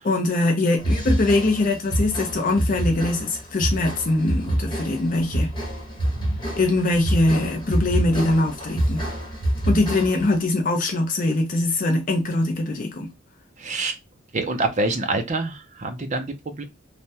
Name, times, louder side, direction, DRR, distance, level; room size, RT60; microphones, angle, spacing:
voice 1, 0.0-5.5 6.6-9.0 9.7-13.1, left 2 dB, 45° left, 0.5 m, -22 dB
sound 1, 0.8-10.4, right 1 dB, 25° left, 1.1 m, -26 dB
voice 2, 13.6-14.0 14.3-16.6, right 2 dB, 35° right, 0.6 m, -26 dB
3.3 x 2.2 x 2.7 m
head